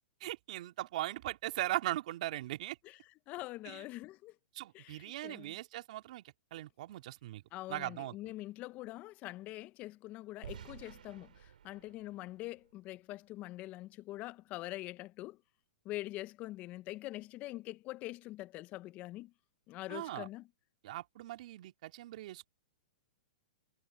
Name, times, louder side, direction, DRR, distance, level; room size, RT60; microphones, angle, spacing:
voice 1, 0.2-2.8 3.7-3.8 4.5-7.4 7.7-8.1 19.9-20.3 20.8-22.5, right 15 dB, 55° right, 2.8 m, -39 dB
voice 2, 3.3-4.4 4.7-5.6 7.5-15.4 15.8-19.3 19.7-20.5, left 17 dB, 35° left, 1.2 m, -44 dB
sound 1, 10.4-13.4, right 9 dB, 75° right, 3.5 m, -53 dB
hypercardioid pair, 125°, 5 cm